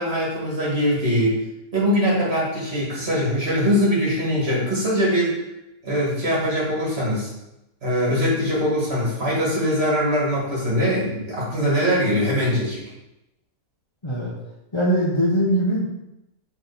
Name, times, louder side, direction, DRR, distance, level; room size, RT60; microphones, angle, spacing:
voice 1, 0.0-1.4 1.7-5.3 5.8-7.3 7.8-12.8, equal, 40° right, -5 dB, 2.0 m, -22 dB
voice 2, 14.0-14.3 14.7-15.9, equal, 25° left, -5 dB, 0.7 m, -21 dB
6.2 x 3.9 x 3.9 m, 0.89 s
omnidirectional pair, 1.7 m